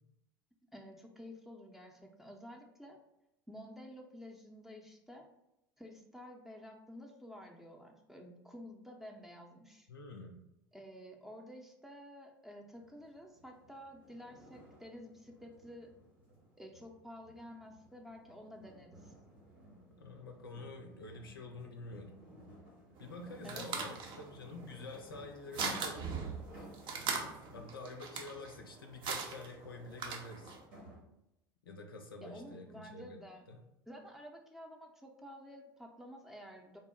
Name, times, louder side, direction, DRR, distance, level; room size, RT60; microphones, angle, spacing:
voice 1, 0.7-3.0 3.5-5.3 5.8-9.9 10.7-15.9 16.6-19.1 23.4-24.0 32.2-33.4 33.9-36.8, equal, 5° right, 1 dB, 0.6 m, -51 dB
voice 2, 9.9-10.4 20.0-22.2 23.0-26.2 26.5-26.7 27.5-30.6 31.6-33.2 33.5-33.6, left 2 dB, 85° left, 3 dB, 0.5 m, -48 dB
sound 1, 12.7-27.9 29.6-29.7 30.4-31.0, equal, 80° right, 1.4 m, -55 dB
sound 2, 23.0-30.6, right 5 dB, 45° right, 0.6 m, -41 dB
3.8 x 2.0 x 3.8 m, 0.87 s
figure-of-eight pair, 70°, 12 cm